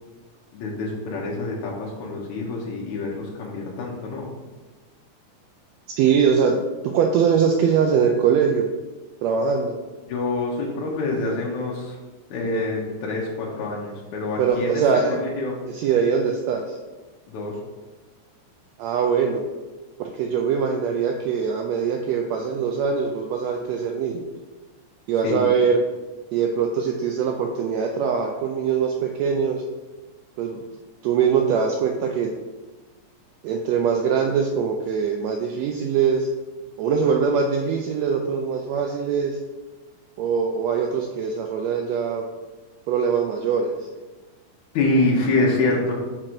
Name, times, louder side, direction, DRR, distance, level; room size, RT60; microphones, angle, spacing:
voice 1, 0.5-4.3 10.1-12.0 12.3-14.8 15.1-15.6 17.3-17.6 25.2-25.5 44.7-45.9, left 2 dB, 75° left, -3 dB, 2.3 m, -26 dB
voice 2, 6.0-6.6 6.8-8.7 9.2-9.8 14.4-15.1 15.7-16.8 18.8-19.4 20.0-24.3 25.1-25.8 26.3-29.6 30.4-30.6 31.0-32.3 33.4-36.3 36.8-39.4 40.2-42.2 42.9-43.7, right 6 dB, 85° right, 2 dB, 1.5 m, -22 dB
6.0 x 3.8 x 4.6 m, 1.2 s
omnidirectional pair, 3.5 m